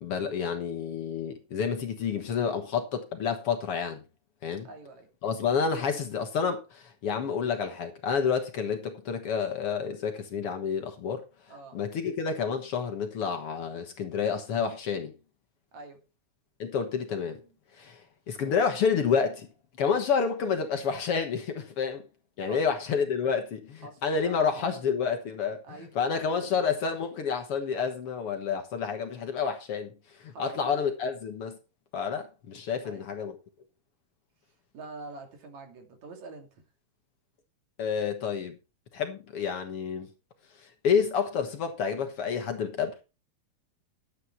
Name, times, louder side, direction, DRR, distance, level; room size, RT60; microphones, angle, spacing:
voice 1, 0.0-4.0 4.4-4.7 5.2-11.2 11.7-15.1 16.6-17.4 17.8-19.5 19.8-22.0 22.4-25.6 26.0-29.9 30.2-31.6 31.9-33.4 37.8-38.6 38.9-40.1 40.8-43.0, left 6 dB, 55° left, 2.0 m, -29 dB
voice 2, 4.6-5.1 11.5-11.8 15.7-16.0 17.4-17.6 22.4-22.8 23.8-24.8 25.6-26.6 30.3-30.8 32.8-33.1 34.7-36.6, right 3 dB, 70° right, 3.7 m, -46 dB
11.5 x 8.6 x 4.4 m
omnidirectional pair, 3.4 m